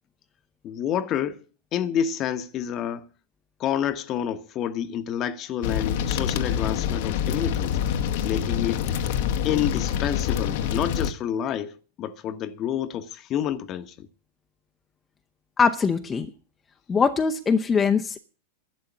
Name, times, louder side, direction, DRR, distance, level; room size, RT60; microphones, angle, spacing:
voice 1, 0.6-1.4 1.7-3.1 3.6-7.8 8.2-8.9 9.4-14.1, left 9 dB, 35° left, 1.1 m, -28 dB
sound 1, 5.6-11.1, left 8 dB, 50° left, 1.1 m, -26 dB
voice 2, 15.6-16.3 16.9-18.2, left 5 dB, 20° left, 0.8 m, -22 dB
12.0 x 7.8 x 9.6 m
figure-of-eight pair, 90°, 0 cm